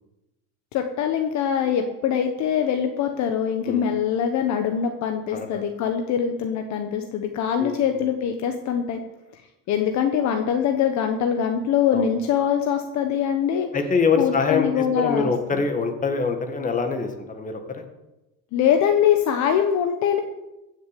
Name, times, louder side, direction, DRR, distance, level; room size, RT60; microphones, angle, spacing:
voice 1, 0.7-9.0 9.7-13.7 14.2-15.3 18.5-20.2, left 8 dB, 40° left, 5 dB, 1.2 m, -23 dB
voice 2, 5.3-5.6 7.6-7.8 11.9-12.1 13.7-14.7 15.0-17.8, left 5 dB, 20° left, 6 dB, 1.7 m, -24 dB
15.5 x 6.7 x 8.4 m, 0.99 s
supercardioid pair, 145°, 44 cm